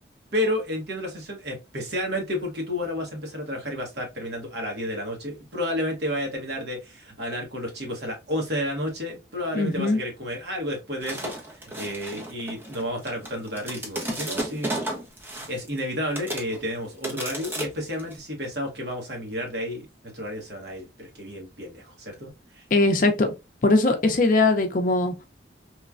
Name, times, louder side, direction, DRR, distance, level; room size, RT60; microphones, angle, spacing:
voice 1, 0.3-14.8 15.2-19.9 20.1-22.6, left 1 dB, 65° right, 1.1 m, -31 dB
voice 2, 9.5-10.0 22.7-23.3 23.6-25.1, left 2 dB, 45° left, 0.5 m, -20 dB
sound 1, 11.0-15.8 16.2-16.6 17.0-18.1, right 1 dB, 10° right, 0.5 m, -33 dB
3.1 x 2.2 x 2.4 m
head